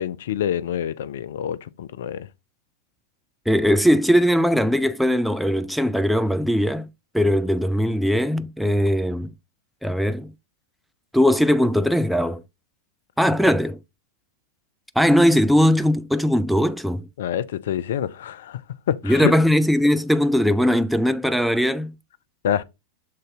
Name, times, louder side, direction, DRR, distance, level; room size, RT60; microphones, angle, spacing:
voice 1, 0.0-2.3 17.2-18.6 18.9-19.3 22.4-22.6, left 10 dB, 60° left, 0.4 m, -26 dB
voice 2, 3.5-6.9 7.1-9.3 9.8-10.3 11.1-12.4 13.2-13.8 15.0-17.1 19.0-21.9, equal, ahead, 0.4 m, -19 dB
6.5 x 3.8 x 3.9 m
figure-of-eight pair, 90°, 0 cm